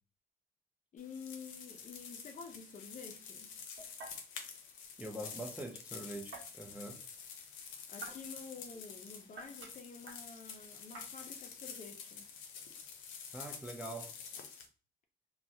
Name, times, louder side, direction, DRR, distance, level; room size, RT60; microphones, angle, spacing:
voice 1, 0.9-3.5 7.9-12.3, left 5 dB, 40° left, 0.5 m, -50 dB
sound 1, 1.0-14.7, left 6 dB, 90° left, 0.5 m, -48 dB
sound 2, 1.4-14.4, right 3 dB, 75° right, 1.1 m, -56 dB
voice 2, 5.0-7.0 13.3-14.1, right 1 dB, 5° right, 0.6 m, -44 dB
3.0 x 2.2 x 2.6 m
cardioid pair, 90°, 20 cm